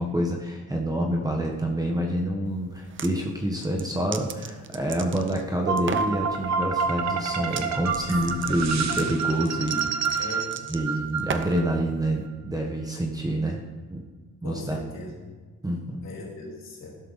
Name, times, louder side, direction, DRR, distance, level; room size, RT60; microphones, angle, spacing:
voice 1, 0.0-10.4 10.7-13.6 13.9-14.0 14.4-14.8 15.6-16.0, right 1 dB, 10° right, 0 dB, 1.2 m, -27 dB
sound 1, 2.7-3.1 3.6-5.4 5.8-6.2 7.4-7.7 7.9-11.7, right 6 dB, 35° right, 0.7 m, -36 dB
sound 2, 5.7-11.8, right 5 dB, 55° right, 1.2 m, -28 dB
voice 2, 8.1-8.8 10.2-10.8 14.4-15.3 16.0-17.0, left 2 dB, 55° left, -2 dB, 3.7 m, -39 dB
15.5 x 12.0 x 4.1 m, 1.4 s
wide cardioid pair, 160°, 33 cm